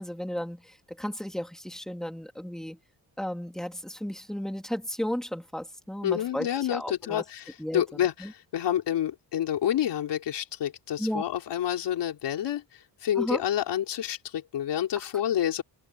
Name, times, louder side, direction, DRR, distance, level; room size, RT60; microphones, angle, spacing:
voice 1, 0.0-2.8 3.2-7.2 7.6-7.8 8.2-8.3 11.0-11.2 13.2-13.4, equal, ahead, 2.1 m, -34 dB
voice 2, 6.0-12.6 13.0-15.6, left 11 dB, 80° left, 4.1 m, -28 dB
wide cardioid pair, 150°, 41 cm